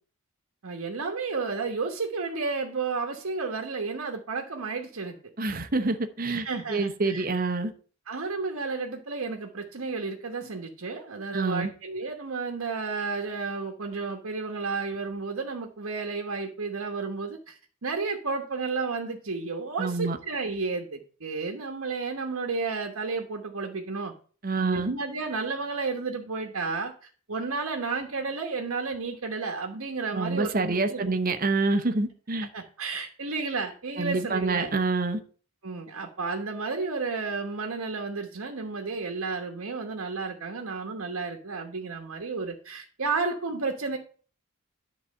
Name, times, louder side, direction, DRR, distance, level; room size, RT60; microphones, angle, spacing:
voice 1, 0.6-5.2 6.3-7.3 8.1-24.1 24.6-26.9 27.3-31.1 32.5-34.7 35.6-44.0, right 4 dB, 80° right, 1.2 m, -32 dB
voice 2, 5.4-7.7 11.3-11.7 19.8-20.2 24.4-24.9 30.1-32.5 34.0-35.2, right 3 dB, 40° right, 0.9 m, -27 dB
10.5 x 4.1 x 6.5 m
head